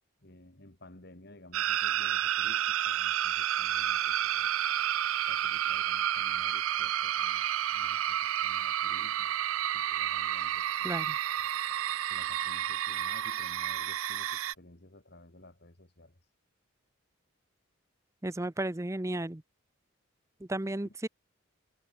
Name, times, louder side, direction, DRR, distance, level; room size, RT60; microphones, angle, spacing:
voice 1, 0.2-4.5 5.3-7.5 7.7-9.4 9.7-11.0 12.1-16.2 20.8-20.9, left 1 dB, 50° left, 2.7 m, -54 dB
sound 1, 1.5-14.5, right 11 dB, 75° right, 0.5 m, -30 dB
voice 2, 10.8-11.2 18.2-19.4 20.4-21.1, right 1 dB, 15° right, 0.6 m, -34 dB
head